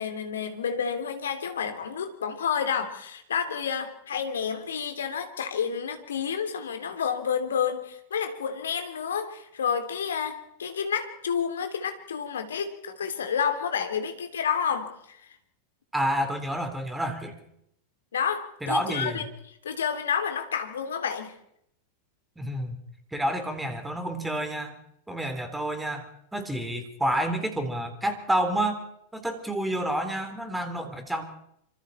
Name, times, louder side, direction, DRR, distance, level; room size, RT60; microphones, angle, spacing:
voice 1, 0.0-15.2 18.1-19.2 19.6-21.3, left 7 dB, 65° left, 7 dB, 3.1 m, -30 dB
voice 2, 15.9-17.4 18.6-19.2 22.4-22.8 23.1-24.7 25.1-28.8 29.1-31.2, right 1 dB, 5° right, 7 dB, 3.9 m, -29 dB
26.5 x 25.5 x 4.4 m, 0.74 s
figure-of-eight pair, 90°, 0 cm